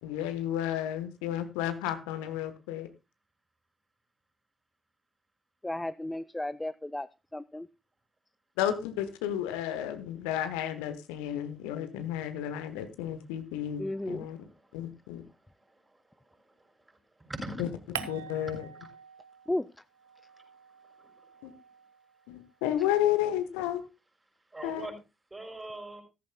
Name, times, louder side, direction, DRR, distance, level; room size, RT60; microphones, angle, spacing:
voice 1, 0.0-2.9 8.6-14.4 14.7-15.2 17.6-17.7 18.1-18.6 21.4-21.5 22.3-23.8 24.6-24.9, left 11 dB, 70° left, 1.1 m, -32 dB
voice 2, 5.6-7.1 7.3-7.7 13.8-14.3 19.5-19.7, left 1 dB, 10° left, 0.5 m, -33 dB
voice 3, 17.3-18.0 18.4-18.5 24.5-24.9 25.3-26.0, right 1 dB, 20° right, 6.1 m, -40 dB
sound 1, 17.9-19.6 19.9-22.4, right 10 dB, 80° right, 0.6 m, -45 dB
14.5 x 13.5 x 2.2 m
figure-of-eight pair, 40°, 0 cm